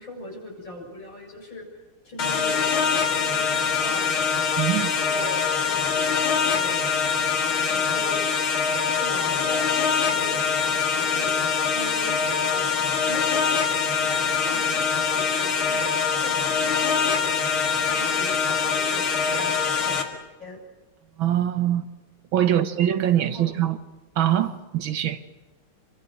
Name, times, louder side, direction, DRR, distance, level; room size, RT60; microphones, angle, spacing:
voice 1, 0.0-6.9 7.7-8.3 8.8-9.7 10.0-11.4 11.7-12.8 13.1-13.6 14.0-20.6 22.5-22.7 23.2-23.6, left 1 dB, 65° left, 7.8 m, -40 dB
sound 1, 2.2-20.0, left 6 dB, 85° left, 2.9 m, -24 dB
voice 2, 4.6-4.9 21.2-21.8 22.3-23.8 24.2-25.2, right 11 dB, 75° right, 2.0 m, -23 dB
28.0 x 24.0 x 6.6 m
omnidirectional pair, 2.2 m